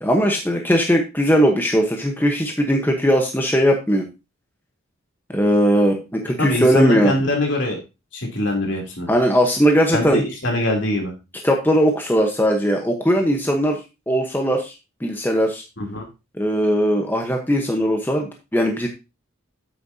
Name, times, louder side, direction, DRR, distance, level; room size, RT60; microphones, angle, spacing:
voice 1, 0.0-4.1 5.3-7.1 9.1-10.2 11.4-13.8 14.1-14.7 15.0-15.6 16.4-18.9, equal, 10° left, 2 dB, 0.9 m, -19 dB
voice 2, 6.4-7.8 8.1-9.1 9.9-11.1 15.8-16.1, left 1 dB, 60° left, 1 dB, 3.0 m, -23 dB
8.6 x 8.4 x 2.7 m, 0.26 s
head